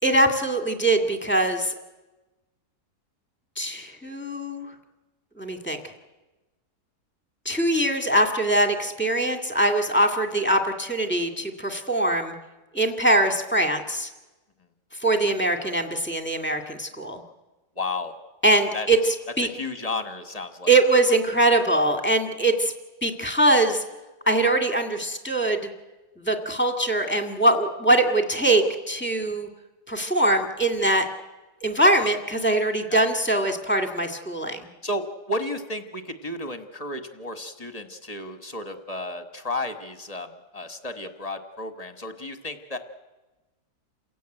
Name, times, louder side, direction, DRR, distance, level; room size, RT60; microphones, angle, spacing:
voice 1, 0.0-1.7 3.6-4.7 5.4-5.8 7.5-12.3 12.7-14.1 15.0-17.2 18.4-19.5 20.7-22.7 23.0-23.8 24.3-25.6 26.2-29.5 29.9-31.1 31.6-34.7, right 1 dB, 5° left, 5 dB, 2.0 m, -22 dB
voice 2, 17.7-18.1 18.7-18.9 19.4-20.7 29.3-29.4 32.9-33.1 34.8-42.8, left 2 dB, 25° left, 8 dB, 1.5 m, -33 dB
28.5 x 16.0 x 9.1 m, 1.1 s
omnidirectional pair, 1.7 m